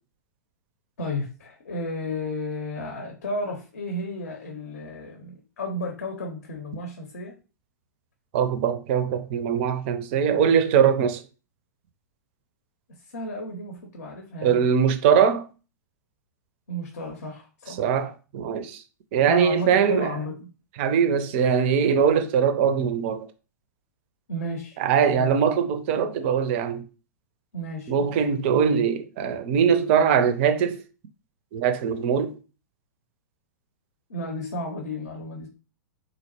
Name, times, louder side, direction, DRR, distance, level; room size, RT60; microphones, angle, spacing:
voice 1, 1.0-7.4 13.1-14.7 16.7-17.8 19.3-20.5 24.3-24.8 25.1-25.3 27.5-28.1 34.1-35.5, left 1 dB, 65° left, 0.6 m, -33 dB
voice 2, 8.3-11.2 14.4-15.5 17.8-18.8 19.1-20.2 20.8-23.3 24.8-26.9 27.9-30.8 31.5-32.4, right 7 dB, 40° right, 0.4 m, -22 dB
3.9 x 2.0 x 2.9 m
figure-of-eight pair, 100°, 10 cm